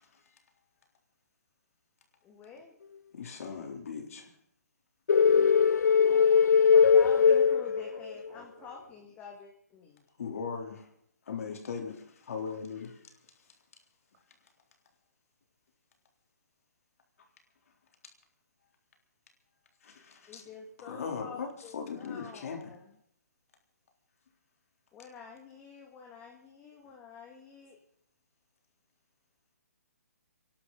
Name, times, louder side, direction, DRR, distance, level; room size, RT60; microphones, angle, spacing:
voice 1, 2.2-2.8 6.7-10.0 20.3-22.9 24.9-27.8, left 5 dB, 15° left, 2.2 m, -48 dB
voice 2, 3.1-4.3 10.2-10.9 11.3-13.1 19.8-20.4 20.8-22.8, left 6 dB, 60° left, 3.6 m, -39 dB
sound 1, 5.1-8.3, left 6 dB, 80° left, 0.5 m, -21 dB
voice 3, 5.2-9.1, right 5 dB, 30° right, 3.8 m, -52 dB
27.5 x 11.5 x 4.1 m
hypercardioid pair, 150°, 9 cm